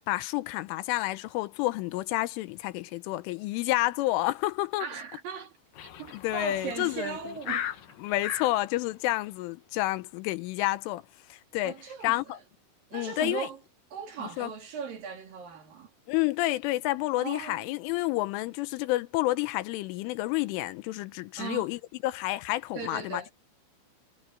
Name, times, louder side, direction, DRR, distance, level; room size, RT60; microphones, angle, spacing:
voice 1, 0.1-4.9 6.1-7.2 8.0-11.0 11.3-11.8 12.0-12.4 12.9-13.5 14.2-14.5 16.1-23.2, left 18 dB, 85° left, 3.3 m, -29 dB
voice 2, 4.8-5.5 6.0-7.7 11.6-12.4 12.9-13.6 13.9-15.9 17.2-17.6 21.4-21.7 22.7-23.3, right 6 dB, 50° right, 3.7 m, -38 dB
sound 1, 5.8-8.6, left 9 dB, 60° left, 2.6 m, -38 dB
omnidirectional pair, 5.6 m